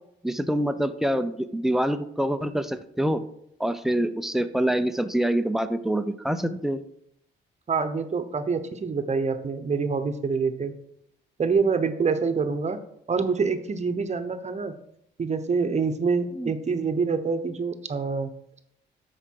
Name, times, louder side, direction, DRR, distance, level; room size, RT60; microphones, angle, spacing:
voice 1, 0.2-3.2 3.6-6.8 16.3-16.5, right 1 dB, ahead, 9 dB, 0.7 m, -26 dB
voice 2, 7.7-10.7 11.4-12.8 13.1-14.7 15.2-18.3, right 5 dB, 35° right, 9 dB, 1.0 m, -26 dB
13.0 x 5.0 x 4.7 m, 0.76 s
cardioid pair, 90°, 20 cm